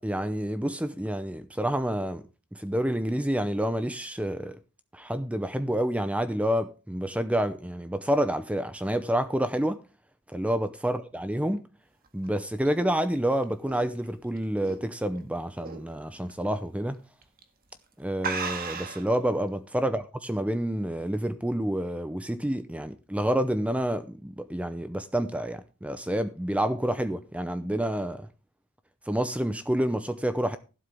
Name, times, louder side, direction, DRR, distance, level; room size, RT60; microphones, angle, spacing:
voice 1, 0.0-2.2 2.5-4.6 4.9-9.8 10.3-11.6 12.1-17.0 18.0-28.3 29.1-30.6, right 1 dB, 5° right, 0.6 m, -28 dB
sound 1, 12.1-15.2 15.6-15.9 16.3-16.4 17.2-17.4 17.7-17.8 18.2-19.1, right 5 dB, 40° right, 1.7 m, -35 dB
12.5 x 11.5 x 3.5 m
head